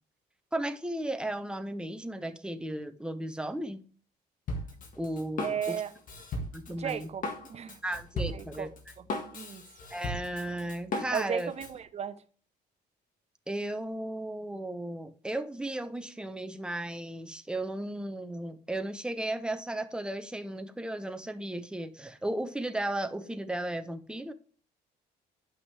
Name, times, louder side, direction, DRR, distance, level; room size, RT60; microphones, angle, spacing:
voice 1, 0.5-3.8 5.0-5.8 6.5-7.1 7.8-8.7 9.9-11.5 13.5-24.3, right 1 dB, 5° right, 0.8 m, -35 dB
Drum kit, 4.5-11.8, left 2 dB, 50° left, 1.8 m, -37 dB
voice 2, 5.4-5.9 6.8-7.8 8.3-8.7 9.3-9.6 11.1-12.2, right 8 dB, 40° right, 0.8 m, -35 dB
9.9 x 5.9 x 3.4 m
cardioid pair, 110°, 17 cm